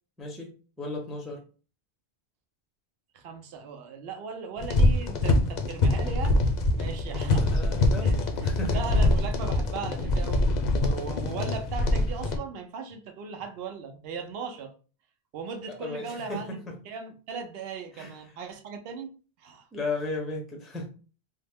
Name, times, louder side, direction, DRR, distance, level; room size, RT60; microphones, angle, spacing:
voice 1, 0.2-1.4 7.2-8.9 15.8-16.8 17.9-18.2 19.7-20.9, left 2 dB, ahead, 1 dB, 0.5 m, -35 dB
voice 2, 3.1-6.4 6.7-7.5 8.0-14.7 15.3-19.1 19.4-19.7, right 5 dB, 70° right, 5 dB, 0.8 m, -38 dB
sound 1, 4.6-12.4, left 2 dB, 55° left, 0.6 m, -24 dB
3.2 x 2.1 x 3.4 m, 0.37 s
omnidirectional pair, 1.1 m